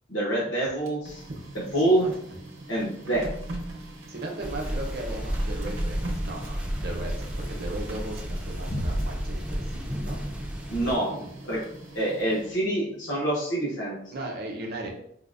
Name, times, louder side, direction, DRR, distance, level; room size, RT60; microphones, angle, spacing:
voice 1, 0.1-1.2 1.7-2.1 2.7-3.3 10.7-11.1 11.4-11.6 11.9-14.0, right 1 dB, 75° left, -6 dB, 0.9 m, -26 dB
Printer, 0.7-12.7, right 1 dB, 90° right, 0.7 m, -42 dB
voice 2, 1.8-2.1 4.1-7.1 7.5-10.2 11.1-11.4 14.1-14.9, right 2 dB, 55° right, 1 dB, 0.6 m, -37 dB
sound 1, 4.4-10.9, equal, 5° right, 0.4 m, -33 dB
sound 2, 7.5-10.3, equal, 40° left, 0.5 m, -35 dB
4.8 x 2.1 x 2.4 m, 0.70 s
head